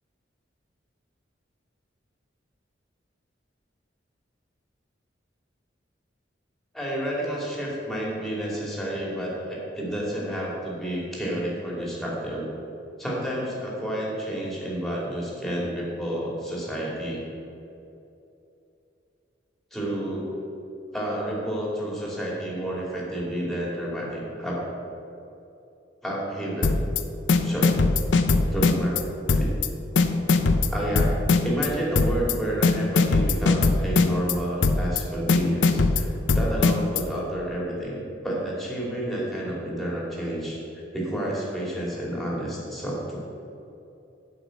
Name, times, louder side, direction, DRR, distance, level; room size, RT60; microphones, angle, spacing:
voice 1, 6.7-12.5 13.0-17.2 19.7-20.4 20.9-24.6 26.0-26.8 27.4-27.7 28.5-29.0 29.3-29.5 30.7-31.1 31.4-40.6 40.9-43.4, right 1 dB, ahead, -5 dB, 2.6 m, -30 dB
sound 1, 26.6-27.0 27.3-29.0 29.3-29.7 30.0-31.7 32.0-32.3 32.6-34.3 34.6-35.0 35.3-37.0, left 3 dB, 75° left, 0.6 m, -20 dB
8.0 x 5.8 x 7.8 m, 2.8 s
head